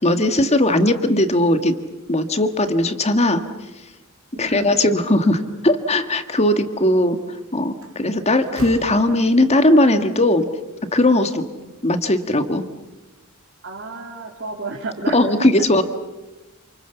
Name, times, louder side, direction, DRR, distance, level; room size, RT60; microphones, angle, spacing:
voice 1, 0.0-1.8 2.1-3.4 4.4-7.2 7.5-10.4 10.9-11.5 11.8-12.6 15.1-15.8, left 1 dB, 30° left, 8 dB, 1.8 m, -18 dB
voice 2, 4.3-4.8 5.1-5.5 6.4-6.5 11.6-11.7 13.6-15.5, right 3 dB, 55° right, -2 dB, 3.2 m, -32 dB
Slam, 7.2-7.4 7.8-9.7, right 1 dB, 75° right, 3.0 m, -38 dB
28.5 x 28.0 x 7.0 m, 1.1 s
head